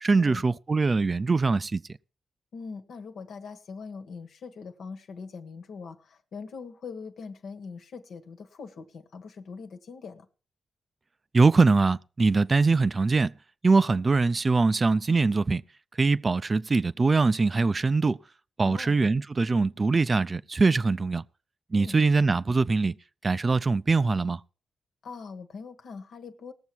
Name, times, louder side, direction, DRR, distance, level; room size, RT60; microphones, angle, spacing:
voice 1, 0.0-1.8 11.3-13.3 13.6-15.6 16.0-18.2 18.6-21.2 21.7-22.9 23.2-24.4, right 3 dB, 40° right, 0.5 m, -22 dB
voice 2, 2.5-10.3 18.6-19.0 21.7-22.0 25.0-26.5, left 5 dB, 75° left, 1.3 m, -42 dB
18.5 x 7.1 x 4.5 m
supercardioid pair, 50°, 0 cm